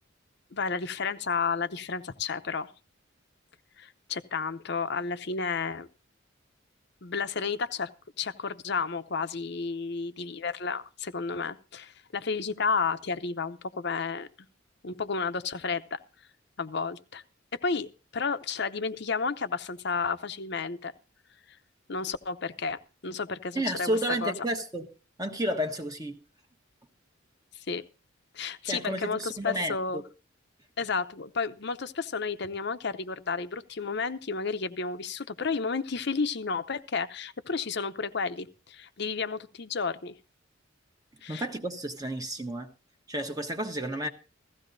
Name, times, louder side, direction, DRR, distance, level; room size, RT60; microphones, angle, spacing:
voice 1, 0.5-2.7 3.8-5.9 7.0-7.9 8.2-14.3 14.8-16.0 16.6-17.2 17.5-20.9 21.5-21.6 21.9-24.3 27.5-27.8 28.3-30.0 30.8-40.1 41.2-41.4, left 5 dB, 55° left, 0.7 m, -32 dB
voice 2, 23.5-24.9 25.2-26.2 28.6-30.0 41.3-42.7 43.1-44.1, right 1 dB, 20° right, 1.1 m, -31 dB
16.0 x 15.0 x 2.7 m
head